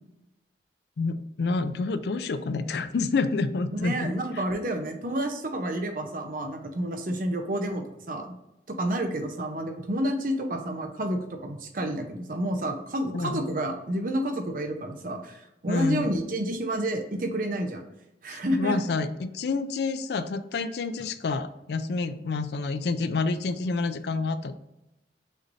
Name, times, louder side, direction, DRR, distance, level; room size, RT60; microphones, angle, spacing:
voice 1, 1.0-4.4 13.1-13.4 15.7-16.1 18.3-24.6, left 4 dB, 65° left, 11 dB, 0.4 m, -28 dB
voice 2, 3.7-8.4 8.7-17.8 18.2-18.9, right 1 dB, 50° right, 4 dB, 0.7 m, -30 dB
6.4 x 3.2 x 2.6 m, 0.91 s
head